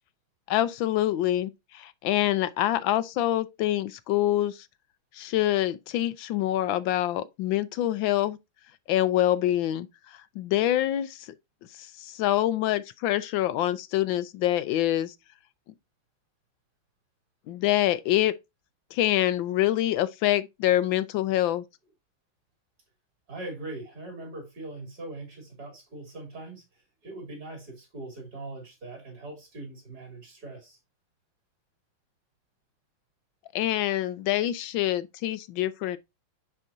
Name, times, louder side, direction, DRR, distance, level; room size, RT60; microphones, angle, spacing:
voice 1, 0.5-4.7 5.1-8.4 8.9-11.3 11.8-15.1 17.5-18.3 18.9-21.6 33.5-36.0, left 13 dB, 80° left, 1.3 m, -26 dB
voice 2, 23.3-26.6 27.0-30.8, right 2 dB, 50° right, 3.9 m, -41 dB
9.9 x 4.4 x 2.6 m
omnidirectional pair, 2.2 m